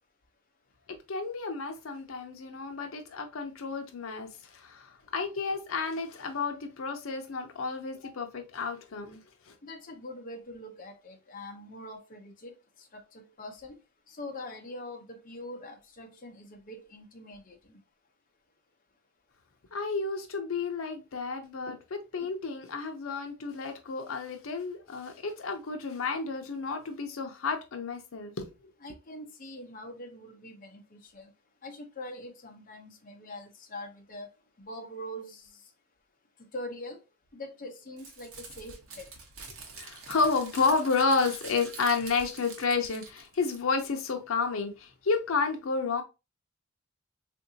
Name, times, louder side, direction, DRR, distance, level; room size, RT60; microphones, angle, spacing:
voice 1, 0.9-9.2 9.5-9.6 19.7-28.5 39.8-46.0, left 4 dB, 80° left, 0.6 m, -31 dB
voice 2, 9.6-13.8 14.1-17.8 28.8-31.3 31.6-34.3 34.6-35.5 36.5-37.0 37.3-39.1, left 1 dB, 40° left, 0.7 m, -43 dB
Crumpling crinkling, 38.0-43.9, right 4 dB, 75° right, 0.9 m, -46 dB
3.7 x 2.6 x 2.6 m
head